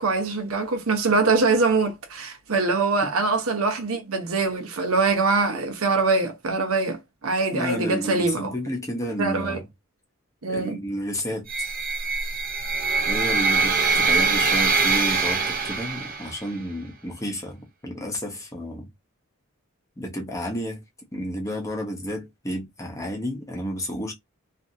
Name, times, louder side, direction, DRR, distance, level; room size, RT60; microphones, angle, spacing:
voice 1, 0.0-8.5 9.2-9.6 10.4-10.8, right 3 dB, 80° right, 0.9 m, -23 dB
voice 2, 7.5-9.6 10.5-11.7 13.1-18.9 20.0-20.8 21.1-24.1, equal, 15° left, 0.7 m, -31 dB
sound 1, 11.5-16.5, right 4 dB, 40° right, 0.8 m, -23 dB
2.7 x 2.5 x 2.6 m
head